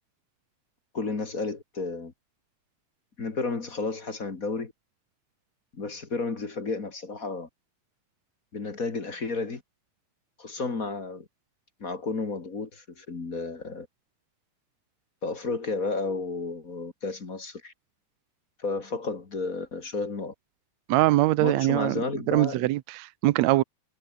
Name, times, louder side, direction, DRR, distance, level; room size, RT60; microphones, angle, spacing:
voice 1, 0.9-2.1 3.2-4.7 5.7-7.5 8.5-9.6 10.4-11.3 11.8-13.9 15.2-17.7 18.6-20.3 21.4-22.7, left 3 dB, 30° left, 2.3 m, -32 dB
voice 2, 20.9-22.0 22.3-23.6, right 17 dB, 70° right, 1.9 m, -22 dB
omnidirectional pair, 3.6 m